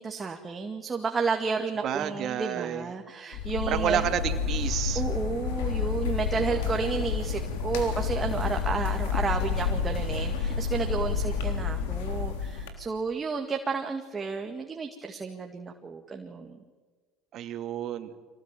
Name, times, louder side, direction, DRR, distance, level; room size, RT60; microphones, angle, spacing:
voice 1, 0.0-4.0 5.0-16.6, right 4 dB, 25° right, 4 dB, 2.1 m, -32 dB
voice 2, 1.8-2.9 3.7-5.0 6.5-6.7 10.9-11.1 17.3-18.1, right 10 dB, 55° right, 8 dB, 2.5 m, -31 dB
sound 1, 3.3-12.7, left 6 dB, 85° left, 3.5 m, -29 dB
25.5 x 18.0 x 9.1 m, 1.4 s
supercardioid pair, 95°, 0 cm